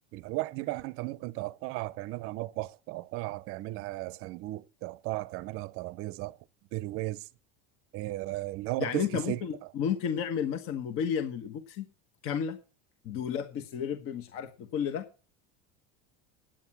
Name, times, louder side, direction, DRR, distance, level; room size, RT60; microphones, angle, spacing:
voice 1, 0.1-6.4 6.7-7.2 7.9-9.4, right 19 dB, 45° right, 0.6 m, -35 dB
voice 2, 8.8-11.9 12.2-12.6 13.0-15.1, left 8 dB, 45° left, 1.3 m, -32 dB
9.4 x 9.0 x 5.9 m
cardioid pair, 170°, 32 cm